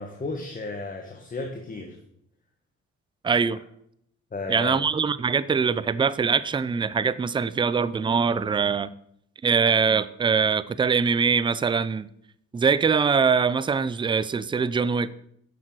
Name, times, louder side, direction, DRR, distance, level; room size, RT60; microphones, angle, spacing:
voice 1, 0.0-2.0 4.3-4.8, left 3 dB, 25° left, 3 dB, 1.3 m, -34 dB
voice 2, 3.2-3.6 4.5-8.9 9.4-12.1 12.5-15.1, right 5 dB, 15° right, 16 dB, 0.4 m, -23 dB
9.8 x 6.5 x 4.6 m, 0.72 s
cardioid pair, 90°, 30 cm